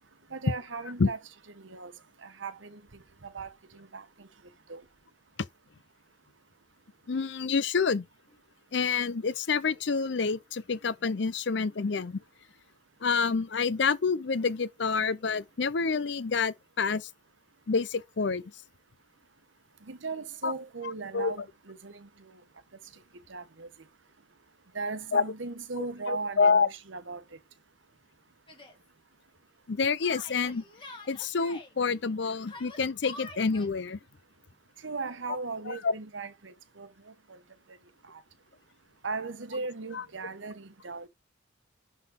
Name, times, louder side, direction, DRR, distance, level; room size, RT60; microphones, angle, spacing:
voice 1, 0.3-1.2 1.6-1.9 2.2-2.8 3.2-4.3 4.7-4.8 19.9-22.1 23.3-23.7 24.7-27.2 34.8-36.9 37.3-37.4 38.1-38.2 39.0-41.1, right 4 dB, 75° right, 1.1 m, -37 dB
voice 2, 7.1-8.0 8.7-12.2 13.0-17.0 17.7-18.4 20.4-20.5 21.1-21.3 25.1-25.2 25.8-26.7 29.7-30.6 31.1-34.0 35.7-35.9, left 5 dB, 60° left, 0.6 m, -28 dB
Yell, 28.5-28.8 30.0-31.7 32.4-33.7, left 2 dB, 25° left, 2.1 m, -46 dB
11.0 x 4.0 x 3.7 m
head